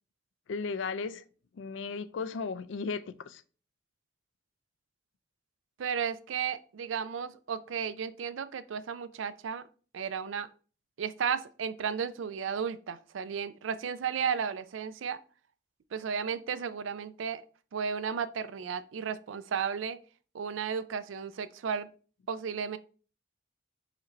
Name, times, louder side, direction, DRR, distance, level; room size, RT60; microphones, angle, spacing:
voice 1, 0.5-1.2 1.5-3.4, left 4 dB, 75° left, 0.4 m, -35 dB
voice 2, 5.8-9.6 9.9-10.5 11.0-15.2 15.9-17.4 17.7-20.0 20.3-21.9 22.3-22.8, right 7 dB, 85° right, 0.4 m, -34 dB
5.0 x 2.6 x 4.2 m
head